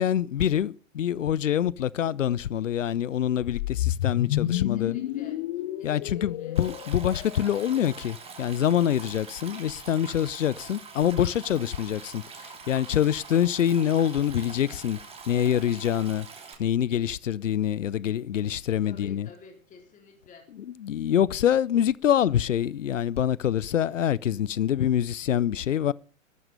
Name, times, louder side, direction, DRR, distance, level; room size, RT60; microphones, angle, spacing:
voice 1, 0.0-5.0 5.8-12.2 12.7-15.0 15.3-16.3 16.6-19.3 20.5-25.9, left 10 dB, 70° left, 0.7 m, -25 dB
sound 1, 3.5-7.7, left 14 dB, 40° left, 0.9 m, -30 dB
voice 2, 4.4-5.4 5.8-6.6 18.8-20.5, left 5 dB, 20° left, 3.9 m, -50 dB
Stream, 6.6-16.6, right 5 dB, 15° right, 3.0 m, -44 dB
14.0 x 12.5 x 5.5 m
figure-of-eight pair, 110°, 40 cm